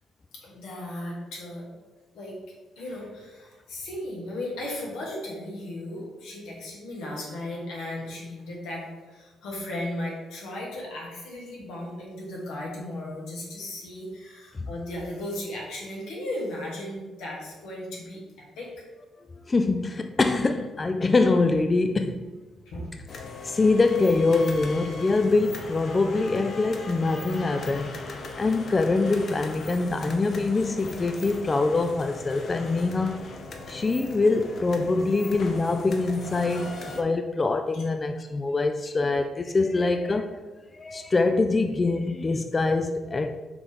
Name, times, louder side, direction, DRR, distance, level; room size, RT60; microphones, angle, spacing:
voice 1, 0.3-1.7 2.1-2.4 2.8-18.2 18.6-18.9 22.7-22.9 37.7-37.8, left 1 dB, 85° left, -3 dB, 2.0 m, -36 dB
voice 2, 19.5-22.3 23.4-28.0 28.4-33.3 33.7-40.4 40.7-43.4, left 3 dB, 30° left, 7 dB, 0.4 m, -24 dB
sound 1, 23.1-37.0, left 3 dB, 55° left, 0.8 m, -39 dB
5.8 x 3.3 x 5.3 m, 1.2 s
cardioid pair, 90°, 0 cm